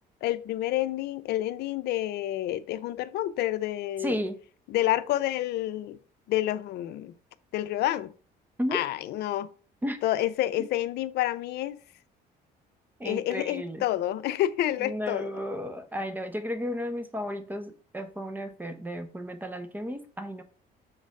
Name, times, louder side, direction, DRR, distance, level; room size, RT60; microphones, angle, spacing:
voice 1, 0.2-4.2 4.7-6.0 6.3-7.1 7.5-8.1 8.7-9.5 10.0-11.8 13.0-15.3, left 14 dB, 75° left, 0.6 m, -29 dB
voice 2, 4.0-4.4 8.6-8.8 9.8-10.0 13.0-13.8 14.8-20.4, equal, 10° right, 1.2 m, -33 dB
7.2 x 3.9 x 5.2 m
cardioid pair, 110°, 17 cm